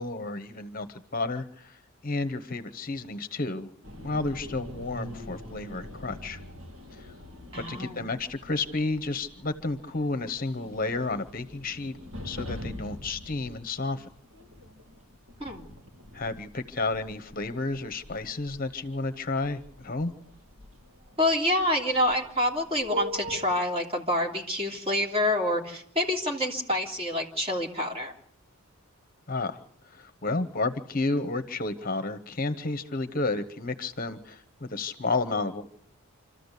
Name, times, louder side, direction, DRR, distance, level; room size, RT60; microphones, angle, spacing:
voice 1, 0.0-3.7 4.0-6.4 6.9-7.1 7.7-12.0 12.2-14.1 16.1-20.1 29.3-35.6, left 3 dB, 40° left, 9 dB, 1.0 m, -31 dB
sound 1, 3.8-23.6, left 1 dB, 75° right, 3.0 m, -44 dB
voice 2, 7.5-8.0 15.4-15.6 21.2-28.1, left 1 dB, 25° right, 0 dB, 3.1 m, -27 dB
27.0 x 14.0 x 8.2 m, 0.68 s
head